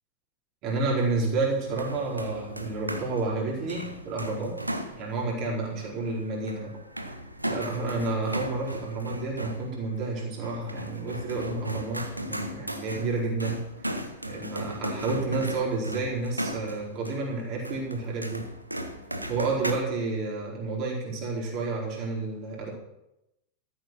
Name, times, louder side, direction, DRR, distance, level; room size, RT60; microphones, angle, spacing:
voice 1, 0.6-4.5 4.9-6.7 7.5-13.6 14.2-18.4 19.3-22.7, right 3 dB, 40° right, -3 dB, 4.8 m, -30 dB
sound 1, 1.6-19.7, equal, 85° right, 1.0 m, -37 dB
13.5 x 7.9 x 6.4 m, 0.90 s
figure-of-eight pair, 90°, 0 cm